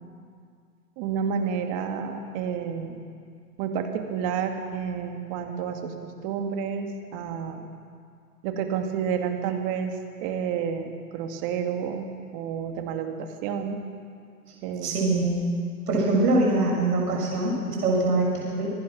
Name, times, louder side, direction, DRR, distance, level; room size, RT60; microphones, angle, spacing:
voice 1, 1.0-3.0 3.6-7.7 8.4-9.9 10.2-12.1 12.3-13.8 14.6-15.0, right 7 dB, 30° right, 5 dB, 2.1 m, -30 dB
voice 2, 14.8-15.5 15.9-18.7, right 2 dB, 70° right, -2 dB, 7.1 m, -23 dB
25.5 x 19.0 x 6.2 m, 2.2 s
hypercardioid pair, 150°, 47 cm